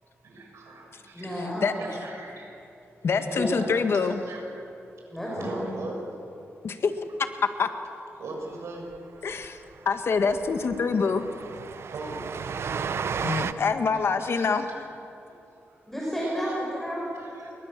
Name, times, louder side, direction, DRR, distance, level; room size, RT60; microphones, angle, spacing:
voice 1, 0.0-1.5 1.9-2.6 3.0-4.7 5.0-5.1 5.3-6.2 8.2-8.9 11.7-12.4 14.2-14.8 15.2-15.4 15.7-15.8 17.2-17.5, right 2 dB, 85° right, 1 dB, 7.1 m, -41 dB
voice 2, 1.1-1.8 3.3-3.5 5.1-5.6 15.9-17.1, equal, 5° left, -5 dB, 6.0 m, -31 dB
voice 3, 3.0-4.2 6.6-6.9 7.6-7.7 9.2-9.6 9.9-11.3 13.2-14.7, left 5 dB, 65° left, 7 dB, 1.8 m, -25 dB
Train, 9.0-9.1 9.3-9.5 9.7-9.8 10.2-13.5, right 6 dB, 65° right, 0.8 m, -33 dB
28.5 x 23.0 x 7.6 m, 2.8 s
wide cardioid pair, 105°, 5 cm